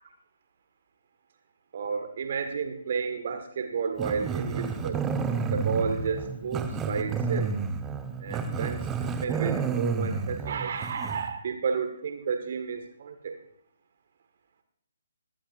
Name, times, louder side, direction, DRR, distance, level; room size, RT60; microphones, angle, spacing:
voice 1, 1.7-5.0 5.5-7.5 8.2-13.4, right 6 dB, 45° right, 7 dB, 1.6 m, -32 dB
Growling, 4.0-11.3, right 5 dB, 15° right, 1.2 m, -30 dB
23.5 x 17.0 x 2.6 m, 0.67 s
figure-of-eight pair, 140°, 0 cm